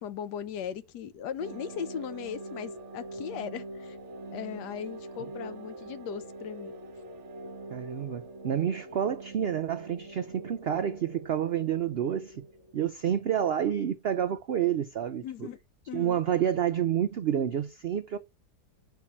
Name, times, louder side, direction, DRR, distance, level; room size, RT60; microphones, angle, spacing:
voice 1, 0.0-4.0 4.3-6.7 15.2-15.6 15.9-16.2, left 8 dB, 85° left, 1.3 m, -38 dB
sound 1, 1.4-13.2, right 2 dB, 50° right, 1.2 m, -44 dB
voice 2, 7.7-12.5 12.7-15.5 15.9-18.2, right 9 dB, 75° right, 0.5 m, -29 dB
8.4 x 5.8 x 4.3 m
omnidirectional pair, 1.7 m